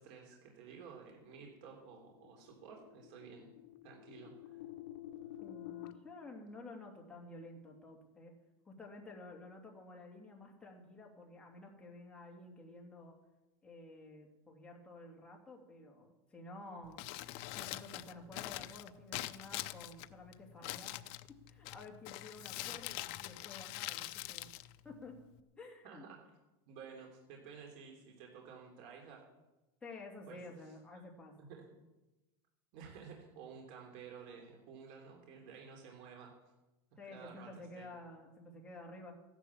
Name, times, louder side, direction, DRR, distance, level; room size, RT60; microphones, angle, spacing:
voice 1, 0.0-3.5 3.8-4.6 25.8-26.2 26.7-29.2 30.3-30.4 31.4-31.6 32.7-36.3 37.0-37.5 37.8-37.9, right 6 dB, 50° right, 0 dB, 3.3 m, -52 dB
sound 1, 1.2-5.9, left 13 dB, 65° left, 1.2 m, -50 dB
voice 2, 5.4-8.3 8.6-13.1 13.6-17.0 17.5-21.0 21.3-24.5 24.8-25.2 25.6-26.0 29.8-31.4 37.0-39.1, left 2 dB, 10° left, -1 dB, 2.8 m, -52 dB
Crumpling crinkling, 16.8-25.4, left 17 dB, 45° left, 0.6 m, -45 dB
15.0 x 11.0 x 7.2 m, 1.0 s
supercardioid pair, 160°, 13 cm